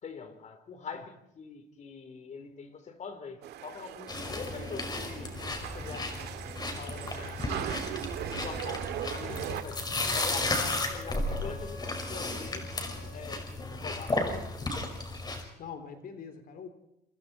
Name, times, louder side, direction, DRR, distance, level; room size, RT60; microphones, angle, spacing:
voice 1, 0.0-5.3 5.6-6.2 6.8-7.8 8.3-9.8 10.1-13.5 13.8-14.2, left 5 dB, 45° left, 8 dB, 4.0 m, -44 dB
sound 1, 3.4-9.6, right 11 dB, 75° right, 2.2 m, -39 dB
sound 2, 4.1-15.4, left 2 dB, 25° left, 5.4 m, -34 dB
Wind instrument woodwind instrument, 8.8-13.3, left 1 dB, ahead, 7.6 m, -49 dB
voice 2, 9.2-9.6 10.4-10.8 13.5-13.9 14.6-15.0 15.6-16.7, left 5 dB, 60° left, 8 dB, 3.4 m, -45 dB
28.0 x 26.0 x 4.4 m, 0.83 s
cardioid pair, 110°, 17 cm